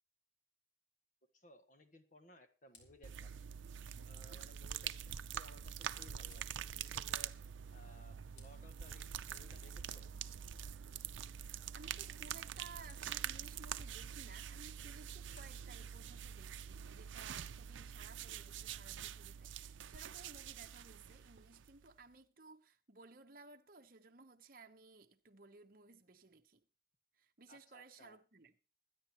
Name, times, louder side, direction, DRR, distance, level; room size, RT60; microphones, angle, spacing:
voice 1, 1.3-3.3 4.0-7.4 7.7-10.1 27.5-28.2, left 1 dB, 40° left, 1.4 m, -61 dB
Fire, 2.7-7.1 8.0-11.3 11.6-11.9 12.2-13.3 14.7-14.8 15.3-17.7 19.5-20.3, left 3 dB, 75° left, 4.1 m, -68 dB
sound 1, 3.0-21.9, right 9 dB, 90° right, 0.6 m, -45 dB
voice 2, 11.7-26.6 27.2-28.6, right 3 dB, 50° right, 1.0 m, -58 dB
22.5 x 10.0 x 3.0 m
head